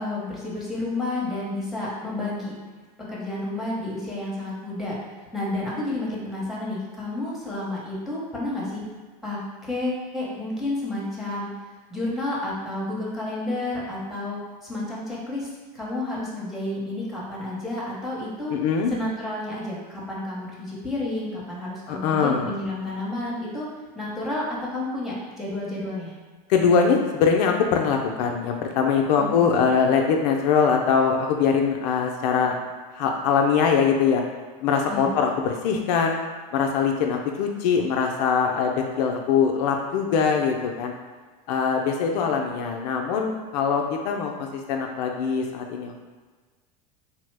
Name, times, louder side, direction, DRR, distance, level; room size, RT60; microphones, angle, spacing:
voice 1, 0.0-2.5 3.1-5.0 5.3-8.8 9.2-11.5 11.9-15.5 15.7-18.5 18.9-23.7 23.9-26.1 29.2-29.4 34.9-35.1, left 2 dB, ahead, -6 dB, 0.8 m, -30 dB
voice 2, 18.5-18.9 21.9-22.5 26.5-32.5 32.9-34.2 34.6-36.2 36.5-40.9 41.5-46.0, left 6 dB, 70° left, 2 dB, 0.4 m, -22 dB
2.8 x 2.0 x 3.2 m, 1.4 s
supercardioid pair, 120°, 21 cm